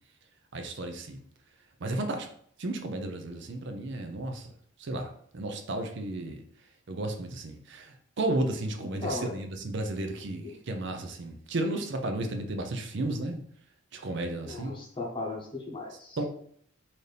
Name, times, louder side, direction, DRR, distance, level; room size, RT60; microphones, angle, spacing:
voice 1, 0.5-1.2 1.8-2.3 2.6-4.5 4.8-6.4 6.9-13.4 13.9-14.7 16.2-16.3, right 2 dB, 60° right, 5 dB, 0.5 m, -33 dB
voice 2, 8.8-9.3 10.3-10.5 14.4-16.2, left 2 dB, 25° left, -1 dB, 0.8 m, -37 dB
4.1 x 2.6 x 3.3 m, 0.63 s
head